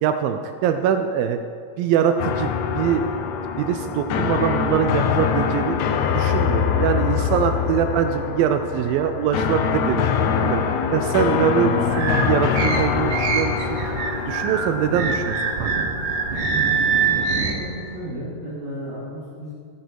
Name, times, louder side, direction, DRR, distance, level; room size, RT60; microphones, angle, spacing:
voice 1, 0.0-1.4 1.8-3.1 3.6-5.8 6.1-13.9 14.3-15.7, right 9 dB, 80° right, 7 dB, 2.3 m, -23 dB
sound 1, 2.2-18.1, left 7 dB, 80° left, 1.7 m, -24 dB
sound 2, 11.9-17.6, right 5 dB, 65° right, 2.5 m, -24 dB
voice 2, 17.5-19.5, equal, 45° right, -10 dB, 3.8 m, -34 dB
15.5 x 10.5 x 4.7 m, 2.2 s
omnidirectional pair, 4.3 m